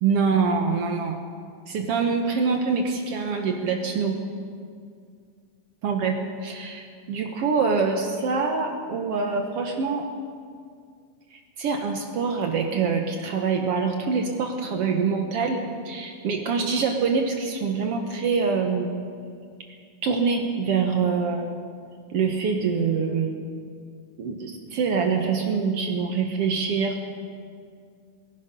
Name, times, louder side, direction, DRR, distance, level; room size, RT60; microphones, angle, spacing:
voice 1, 0.0-1.2 1.7-4.2 5.8-10.1 11.3-19.0 20.0-21.5 22.1-23.5 24.2-27.0, right 5 dB, 70° right, 3 dB, 1.4 m, -25 dB
21.5 x 11.0 x 5.2 m, 2.2 s
omnidirectional pair, 3.9 m